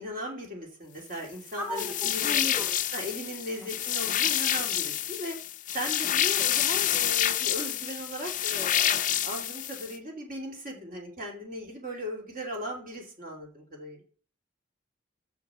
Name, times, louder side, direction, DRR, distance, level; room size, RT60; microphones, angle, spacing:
voice 1, 0.0-2.4 2.9-5.4 5.7-14.0, equal, 45° right, 0 dB, 2.9 m, -38 dB
voice 2, 1.6-2.7 3.5-3.7, equal, 10° right, -1 dB, 2.4 m, -36 dB
sound 1, 1.8-9.9, left 11 dB, 40° left, 0.6 m, -28 dB
7.1 x 6.5 x 7.6 m, 0.42 s
head